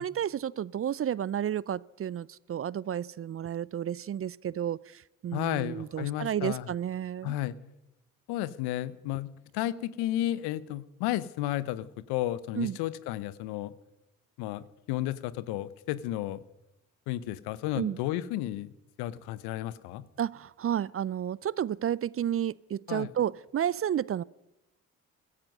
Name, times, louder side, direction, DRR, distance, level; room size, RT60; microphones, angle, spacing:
voice 1, 0.0-7.4 12.6-12.8 17.8-18.0 20.2-24.2, right 10 dB, 35° right, 23 dB, 0.5 m, -31 dB
voice 2, 5.3-6.7 7.2-7.6 8.3-13.7 14.4-16.4 17.1-18.7 19.0-20.0 22.9-23.1, left 14 dB, 75° left, 17 dB, 0.9 m, -33 dB
16.0 x 14.5 x 5.5 m, 0.89 s
hypercardioid pair, 50°, 39 cm